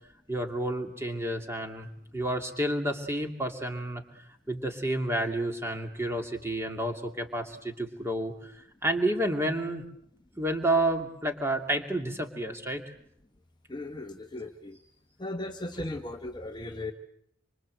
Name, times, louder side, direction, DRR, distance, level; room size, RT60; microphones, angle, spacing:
voice 1, 0.3-1.9 2.1-4.0 4.5-8.5 8.8-9.8 10.4-12.8, right 1 dB, 10° right, 4 dB, 2.6 m, -30 dB
voice 2, 13.7-14.8 15.2-16.9, left 2 dB, 20° left, 5 dB, 1.0 m, -37 dB
26.5 x 25.0 x 7.8 m, 0.72 s
head